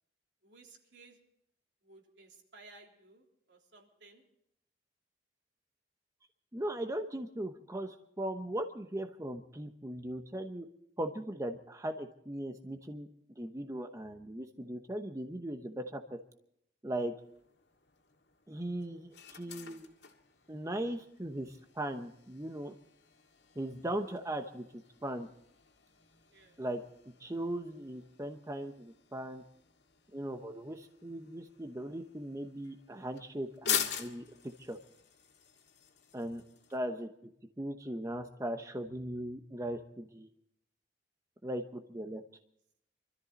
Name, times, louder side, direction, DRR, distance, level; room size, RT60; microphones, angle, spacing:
voice 1, 0.4-1.2 1.8-4.2 26.3-26.6, right 3 dB, 80° right, 0 dB, 3.5 m, -58 dB
voice 2, 6.5-10.7 11.0-13.1 13.4-16.2 16.8-17.1 18.5-19.9 20.5-22.7 23.5-24.7 25.0-25.3 26.6-26.8 27.2-29.4 30.1-34.8 36.1-36.4 36.7-37.3 37.6-40.3 41.4-42.2, right 1 dB, 20° right, 5 dB, 0.9 m, -38 dB
sound 1, 17.2-36.8, left 8 dB, 80° left, 1.9 m, -45 dB
25.0 x 13.5 x 4.1 m, 0.73 s
head